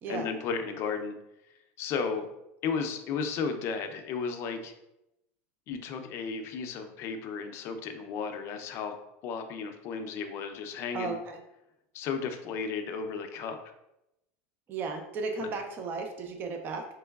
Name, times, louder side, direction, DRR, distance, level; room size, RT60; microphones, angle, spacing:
voice 1, 0.1-1.2 1.8-2.2 2.6-4.7 5.7-9.0 9.2-11.2 11.9-13.6 15.4-15.5, left 5 dB, 40° left, 6 dB, 0.5 m, -34 dB
voice 2, 10.9-11.4 14.7-16.9, right 3 dB, 30° right, 4 dB, 0.4 m, -34 dB
4.5 x 3.0 x 2.3 m, 0.88 s
supercardioid pair, 150°, 7 cm